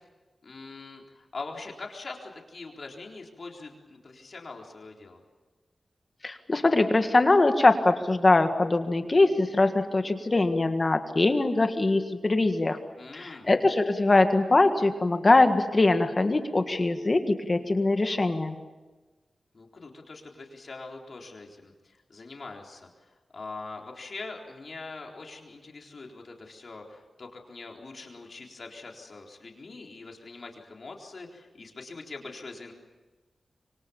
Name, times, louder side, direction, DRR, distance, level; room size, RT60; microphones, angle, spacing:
voice 1, 0.4-5.2 13.0-13.5 19.5-32.7, left 3 dB, 50° left, 1 dB, 4.0 m, -43 dB
voice 2, 6.2-12.8 13.1-18.6, left 2 dB, 30° left, 7 dB, 1.7 m, -22 dB
26.5 x 24.0 x 7.2 m, 1.2 s
wide cardioid pair, 125°, 0 cm